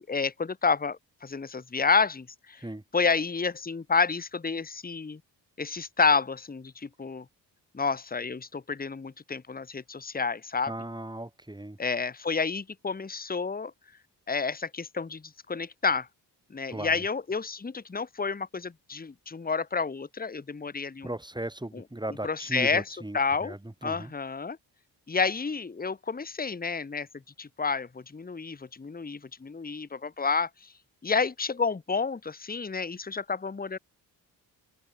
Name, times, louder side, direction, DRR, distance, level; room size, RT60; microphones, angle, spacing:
voice 1, 0.0-2.7 2.9-5.2 5.6-7.2 7.7-10.7 11.8-13.7 14.3-16.1 16.5-21.1 21.7-23.6 23.8-24.6 25.1-27.1 27.4-30.7 31.0-33.8, left 5 dB, 20° left, 1.1 m, -30 dB
voice 2, 10.7-11.8 16.7-16.9 21.0-24.1, right 1 dB, 10° right, 2.8 m, -37 dB
open air
supercardioid pair, 55°, 42 cm